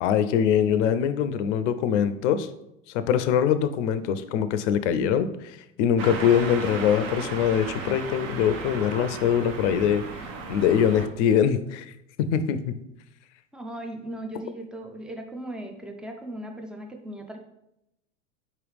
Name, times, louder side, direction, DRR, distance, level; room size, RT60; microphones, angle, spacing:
voice 1, 0.0-2.5 2.9-10.0 10.5-11.9 12.2-12.8, left 8 dB, 65° left, 12 dB, 0.5 m, -23 dB
sound 1, 6.0-11.1, right 4 dB, 40° right, 0.7 m, -35 dB
voice 2, 13.5-17.4, right 1 dB, ahead, 3 dB, 0.4 m, -37 dB
4.6 x 3.0 x 3.4 m, 0.83 s
hypercardioid pair, 100°, 39 cm